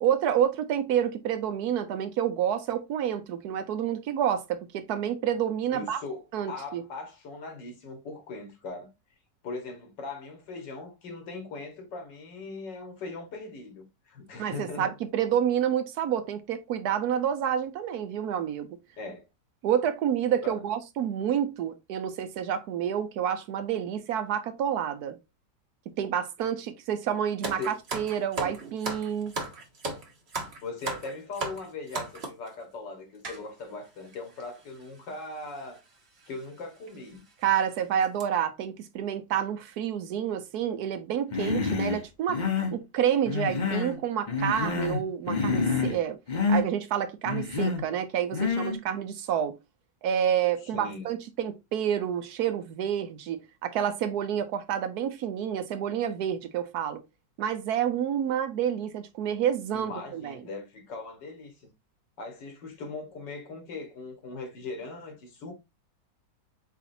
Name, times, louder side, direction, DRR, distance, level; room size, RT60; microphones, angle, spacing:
voice 1, 0.0-6.0 6.3-6.8 14.4-18.7 19.6-25.2 26.0-29.3 37.4-42.4 42.7-46.2 46.5-49.6 50.0-57.0 57.4-60.4, right 9 dB, 70° right, 1.1 m, -29 dB
voice 2, 5.7-8.9 9.4-14.9 19.0-19.2 20.4-20.6 27.6-27.8 30.6-35.8 36.3-37.2 50.6-51.1 59.7-61.7 62.2-65.5, left 3 dB, 85° left, 2.1 m, -40 dB
sound 1, 27.4-32.5 33.2-33.4 34.1-34.2 34.4-34.6 35.6-35.8 36.2-36.3 36.9-37.0 37.4-37.6 38.0-38.2, right 3 dB, 40° right, 1.2 m, -35 dB
Human voice, 41.3-42.0 42.3-42.8 43.2-44.0 44.3-45.0 45.3-46.0 46.3-46.6 47.2-47.8 48.3-48.8, left 4 dB, 40° left, 0.7 m, -27 dB
4.8 x 4.1 x 2.7 m
omnidirectional pair, 1.9 m